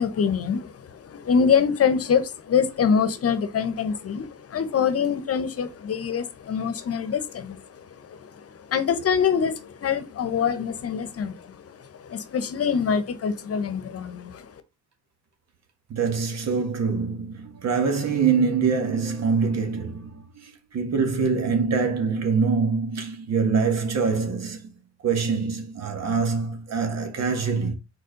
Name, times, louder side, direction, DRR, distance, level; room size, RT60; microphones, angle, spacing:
voice 1, 0.0-14.5, left 6 dB, 50° left, 1.0 m, -25 dB
voice 2, 15.9-24.7 25.0-27.7, right 5 dB, 60° right, 1.8 m, -24 dB
4.6 x 4.3 x 5.2 m
cardioid pair, 90°, 30 cm